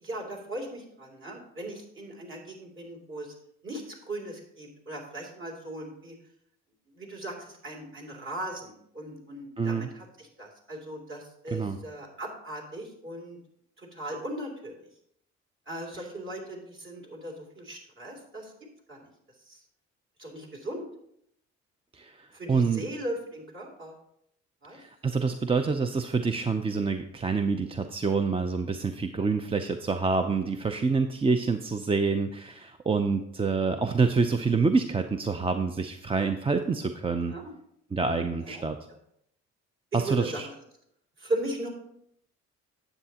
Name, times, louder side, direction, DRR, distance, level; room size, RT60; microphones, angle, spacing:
voice 1, 0.0-3.3 3.6-6.1 6.9-13.4 13.8-14.8 15.7-18.5 18.9-19.1 19.5-19.6 20.2-20.8 22.3-23.9 24.6-24.8 37.2-37.5 38.4-38.6 39.9-40.5 41.2-41.7, right 1 dB, 40° right, 0 dB, 2.9 m, -38 dB
voice 2, 9.6-9.9 11.5-11.8 21.9-22.8 24.7-37.3 37.9-38.8 39.9-40.5, right 4 dB, 20° right, 7 dB, 0.5 m, -27 dB
9.6 x 7.9 x 2.9 m, 0.72 s
cardioid pair, 90°, 30 cm